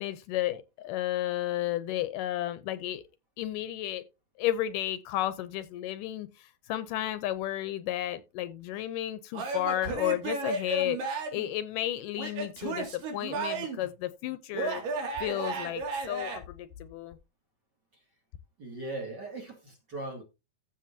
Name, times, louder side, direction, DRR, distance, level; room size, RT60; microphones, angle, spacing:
voice 1, 0.0-3.0 3.4-4.0 4.4-6.3 6.7-11.0 11.3-14.8 15.2-17.2, left 13 dB, 80° left, 2.1 m, -32 dB
Male speech man speaking / Yell / Laughter, 9.3-11.5 12.2-13.9 14.5-16.4, right 3 dB, 75° right, 3.9 m, -33 dB
voice 2, 18.6-20.2, right 2 dB, 35° right, 2.1 m, -39 dB
15.0 x 6.2 x 2.7 m
omnidirectional pair, 4.0 m